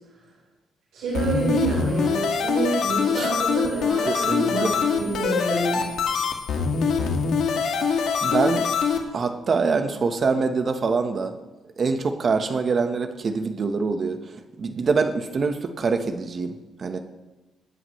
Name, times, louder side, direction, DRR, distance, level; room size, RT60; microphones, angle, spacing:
voice 1, 0.9-6.2, right 3 dB, 85° right, -6 dB, 4.4 m, -28 dB
sound 1, 1.1-9.0, left 5 dB, 70° left, 1.8 m, -24 dB
voice 2, 4.1-4.8 7.8-7.9 8.2-8.7 9.1-11.4 11.8-14.2 14.6-17.0, right 4 dB, 45° right, 7 dB, 1.2 m, -24 dB
23.5 x 10.0 x 3.2 m, 1.1 s
cardioid pair, 90°, 0 cm